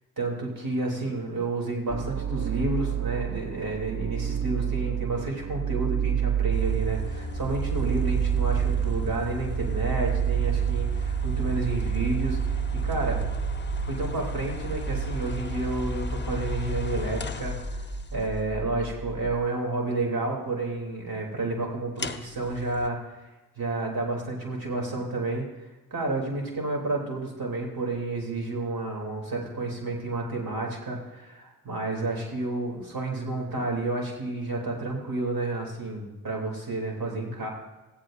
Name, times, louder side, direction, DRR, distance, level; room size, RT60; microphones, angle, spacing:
voice 1, 0.2-13.2 13.8-23.2 23.6-25.5 25.9-37.5, right 2 dB, 65° right, 0 dB, 3.1 m, -30 dB
sound 1, 1.9-19.4, right 9 dB, 40° right, 0.8 m, -29 dB
sound 2, 6.5-18.2 22.0-22.9, left 4 dB, 30° left, 0.9 m, -36 dB
17.0 x 15.5 x 2.6 m, 1.1 s
cardioid pair, 45°, 37 cm